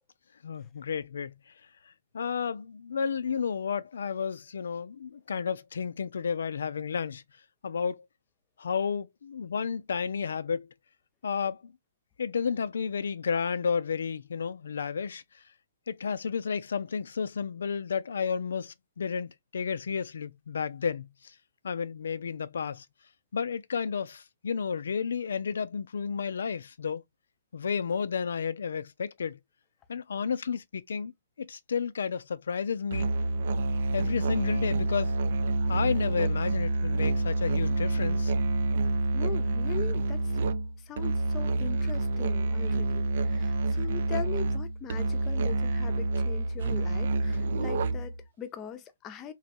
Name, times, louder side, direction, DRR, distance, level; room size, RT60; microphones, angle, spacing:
voice 1, 0.4-1.3 2.1-7.2 7.6-8.0 8.6-10.7 11.2-11.7 12.2-15.2 15.9-21.1 21.6-22.9 23.3-27.0 27.5-29.4 29.9-31.1 31.4-33.1 33.9-35.2 35.7-38.3, left 6 dB, 70° left, 0.3 m, -32 dB
Musical instrument, 32.9-48.2, right 2 dB, 60° right, 0.4 m, -28 dB
voice 2, 39.1-40.2 40.9-49.3, left 8 dB, 25° left, 0.6 m, -41 dB
3.1 x 2.7 x 2.6 m
figure-of-eight pair, 125°, 0 cm